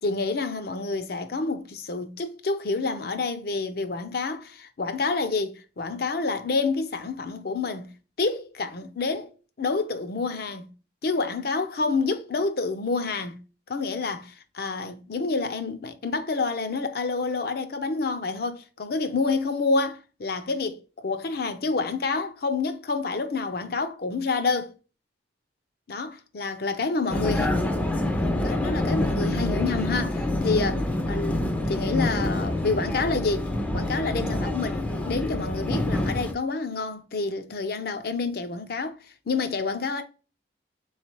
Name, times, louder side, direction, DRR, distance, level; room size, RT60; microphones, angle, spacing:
voice 1, 0.0-9.3 9.6-10.7 11.0-13.4 13.7-24.7 25.9-27.5 28.1-40.0, left 3 dB, 55° left, 0.5 m, -28 dB
Vehicle, 27.1-36.3, left 1 dB, 10° left, 0.4 m, -26 dB
3.9 x 3.2 x 2.9 m
head